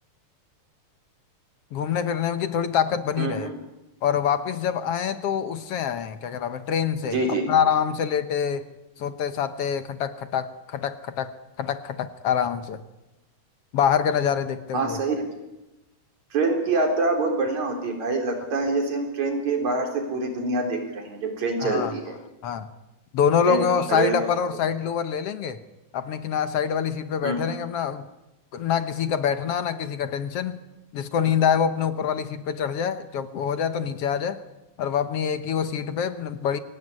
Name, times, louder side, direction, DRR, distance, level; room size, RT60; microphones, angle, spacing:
voice 1, 1.7-3.5 4.0-8.7 9.0-11.3 11.6-12.8 13.7-15.0 21.6-21.9 22.4-22.7 23.1-25.6 25.9-28.1 28.5-30.6 30.9-34.4 34.8-36.6, left 8 dB, 65° left, 11 dB, 1.8 m, -25 dB
voice 2, 3.2-3.6 7.1-7.5 14.7-15.3 16.3-22.1 23.4-24.3 27.2-27.5, right 3 dB, 70° right, 3 dB, 5.2 m, -25 dB
24.0 x 17.5 x 9.7 m, 0.97 s
omnidirectional pair, 3.3 m